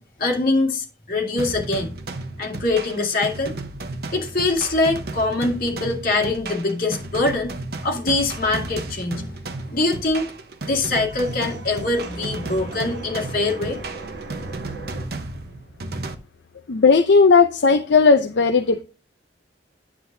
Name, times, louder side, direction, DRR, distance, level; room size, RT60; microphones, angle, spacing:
voice 1, 0.0-1.9 2.4-3.5 4.1-7.5 7.8-9.3 9.7-10.3 10.6-13.8, left 2 dB, 50° left, 2.2 m, -23 dB
sound 1, 1.4-16.1, right 2 dB, 55° right, 0.9 m, -34 dB
sound 2, 9.6-15.1, right 2 dB, 70° right, 3.6 m, -38 dB
voice 2, 16.7-18.8, left 4 dB, 65° left, 0.6 m, -15 dB
9.6 x 7.4 x 2.7 m
head